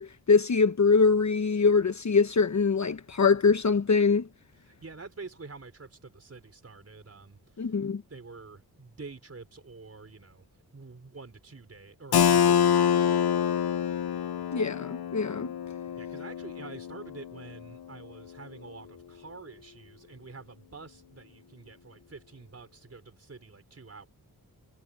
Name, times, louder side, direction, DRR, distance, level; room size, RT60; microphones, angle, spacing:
voice 1, 0.0-4.3 7.6-8.0 14.5-15.5, left 4 dB, 50° left, 1.1 m, -23 dB
voice 2, 4.5-10.5 10.7-13.3 16.0-24.1, right 4 dB, 40° right, 4.6 m, -47 dB
Keyboard (musical), 12.1-17.7, left 8 dB, 80° left, 1.0 m, -26 dB
wide cardioid pair, 85°, 37 cm